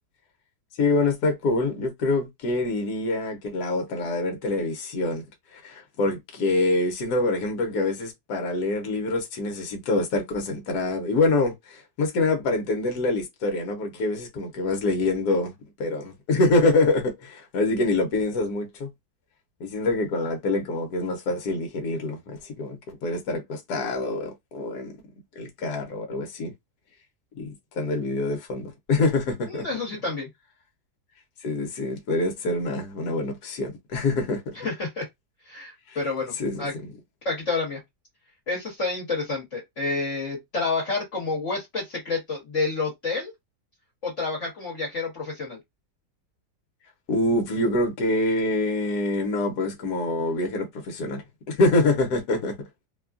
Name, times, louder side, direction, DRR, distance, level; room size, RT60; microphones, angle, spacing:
voice 1, 0.8-5.2 5.5-15.5 15.8-18.9 19.6-25.0 25.4-26.5 27.4-29.7 31.4-34.6 35.9-36.0 36.4-36.6 47.1-52.6, left 2 dB, 70° left, 1.4 m, -25 dB
voice 2, 29.5-30.3 34.5-35.0 35.5-36.7 37.2-37.8 38.5-43.3 44.0-45.6, left 3 dB, 50° left, 1.5 m, -29 dB
3.2 x 2.3 x 2.5 m
omnidirectional pair, 1.8 m